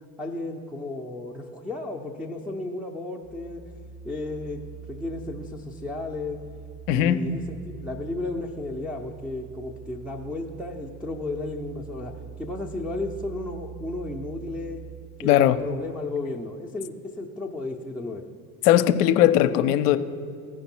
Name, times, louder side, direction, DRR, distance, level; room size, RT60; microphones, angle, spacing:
voice 1, 0.2-3.6 4.0-6.4 6.9-14.8 15.2-18.3, left 2 dB, ahead, -3 dB, 0.6 m, -34 dB
Musical instrument, 3.2-15.2, right 7 dB, 55° right, 1.7 m, -43 dB
voice 2, 6.9-7.2 15.2-15.6 18.6-20.0, left 12 dB, 75° left, 11 dB, 0.6 m, -19 dB
15.0 x 5.2 x 4.4 m, 2.2 s
hypercardioid pair, 70°, 47 cm